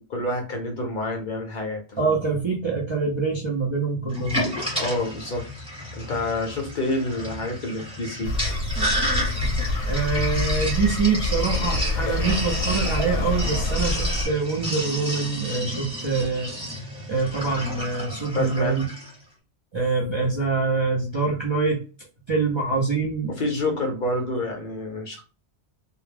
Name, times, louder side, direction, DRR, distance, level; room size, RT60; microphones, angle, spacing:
voice 1, 0.1-2.0 4.8-5.5 5.9-8.3 18.3-18.8 23.3-25.2, left 2 dB, 55° left, 2 dB, 0.7 m, -28 dB
voice 2, 2.0-4.4 9.8-16.5 17.1-18.9 19.7-21.8 22.3-23.3, right 4 dB, 35° right, -3 dB, 0.5 m, -25 dB
Sink (filling or washing), 4.1-19.1, equal, 5° right, 0.9 m, -31 dB
sound 1, 8.2-14.2, left 2 dB, 85° left, 0.9 m, -26 dB
2.2 x 2.0 x 3.2 m, 0.34 s
omnidirectional pair, 1.1 m